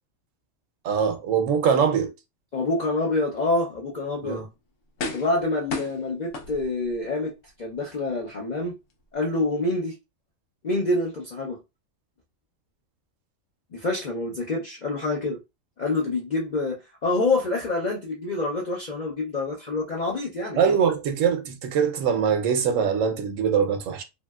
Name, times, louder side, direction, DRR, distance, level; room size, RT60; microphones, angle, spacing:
voice 1, 0.8-2.1 4.2-4.5 20.6-24.0, right 7 dB, 70° right, 1.0 m, -23 dB
voice 2, 2.5-4.4 5.1-8.8 9.1-9.9 10.6-11.6 13.7-15.4 15.8-16.8 17.0-20.8, left 2 dB, 55° left, 0.5 m, -27 dB
sound 1, 4.1-4.2 5.0-5.4 5.7-6.9 7.5-7.6, left 3 dB, 70° left, 1.0 m, -34 dB
3.0 x 2.7 x 2.3 m
omnidirectional pair, 1.4 m